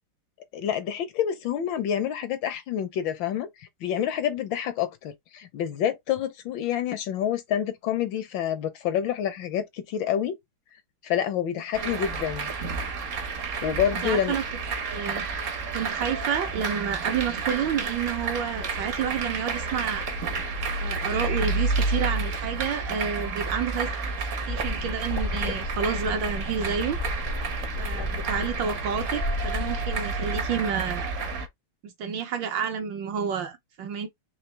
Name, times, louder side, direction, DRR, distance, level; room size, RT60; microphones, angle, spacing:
voice 1, 0.5-10.4 11.0-12.5 13.6-14.4, left 9 dB, 75° left, 1.1 m, -28 dB
sound 1, 11.7-31.5, right 4 dB, 55° right, 0.8 m, -30 dB
voice 2, 14.0-14.4 14.9-15.3 15.7-20.1 20.8-23.9 24.5-27.0 27.8-31.1 31.8-34.1, right 7 dB, 70° right, 1.2 m, -30 dB
sound 2, 24.4-30.0, left 2 dB, 55° left, 0.5 m, -33 dB
4.0 x 2.9 x 3.1 m
omnidirectional pair, 2.4 m